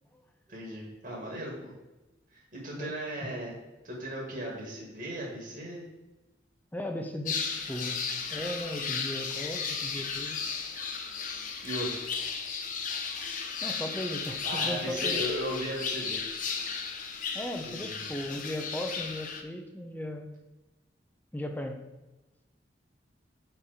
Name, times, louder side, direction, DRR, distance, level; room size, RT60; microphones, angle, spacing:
voice 1, 0.5-1.8 2.3-3.5 3.8-5.8 11.6-12.0 14.4-16.6 17.6-18.0, equal, 45° right, -2 dB, 1.7 m, -37 dB
voice 2, 6.7-8.0 8.3-10.4 13.6-15.2 17.3-20.3 21.3-21.8, left 1 dB, 10° left, 5 dB, 0.6 m, -37 dB
sound 1, 7.3-19.4, left 5 dB, 45° left, 0.7 m, -34 dB
7.0 x 4.5 x 5.0 m, 1.0 s
head